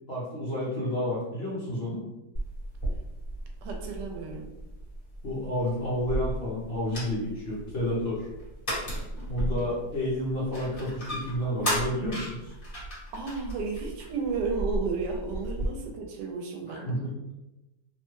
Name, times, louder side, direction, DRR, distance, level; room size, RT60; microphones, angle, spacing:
voice 1, 0.1-2.0 5.2-8.3 9.3-12.5 16.7-17.1, left 1 dB, 55° left, -7 dB, 0.7 m, -30 dB
sound 1, 2.3-15.7, right 1 dB, 35° left, 1.2 m, -35 dB
voice 2, 3.6-4.5 13.1-16.9, right 4 dB, 85° right, 3 dB, 1.2 m, -33 dB
3.0 x 2.2 x 3.0 m, 0.96 s
omnidirectional pair, 1.8 m